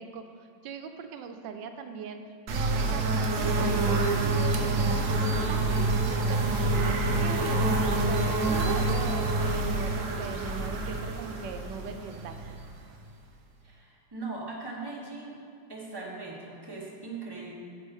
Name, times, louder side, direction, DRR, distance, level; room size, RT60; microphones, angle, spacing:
voice 1, 0.0-2.2 2.5-5.9 6.3-12.6, right 6 dB, 80° right, 7 dB, 1.3 m, -40 dB
sound 1, 2.5-13.1, right 2 dB, 55° right, 1.0 m, -27 dB
voice 2, 13.6-15.4 15.7-17.5, right 3 dB, 15° right, -3 dB, 1.0 m, -39 dB
8.0 x 5.3 x 5.3 m, 2.6 s
omnidirectional pair, 1.9 m